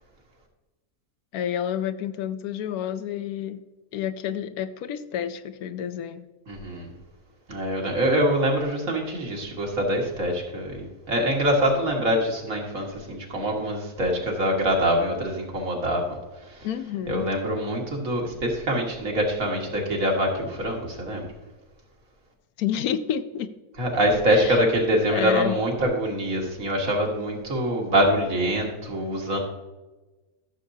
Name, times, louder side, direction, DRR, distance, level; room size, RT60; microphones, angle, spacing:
voice 1, 1.3-3.6 3.9-6.3 16.6-17.2 22.6-23.5 24.3-24.6 25.1-25.6, left 9 dB, 80° left, 11 dB, 1.0 m, -29 dB
voice 2, 6.5-6.9 7.5-16.7 17.1-21.3 23.8-29.4, equal, 60° right, 0 dB, 2.1 m, -24 dB
13.5 x 6.8 x 2.7 m, 1.2 s
omnidirectional pair, 1.6 m